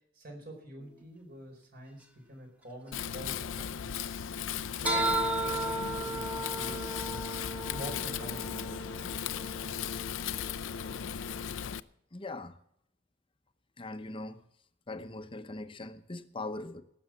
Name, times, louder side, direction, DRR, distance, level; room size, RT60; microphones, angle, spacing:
voice 1, 0.2-3.7 4.5-7.2 7.7-9.4, right 1 dB, 50° right, 4.5 m, -46 dB
sound 1, 0.8-1.0 4.9-11.4, right 1 dB, 5° right, 1.4 m, -35 dB
Wind, 2.9-11.8, left 8 dB, 85° left, 0.5 m, -37 dB
voice 2, 12.1-12.6 13.8-14.4 14.9-16.8, left 2 dB, 25° left, 0.8 m, -40 dB
17.5 x 7.1 x 7.3 m
head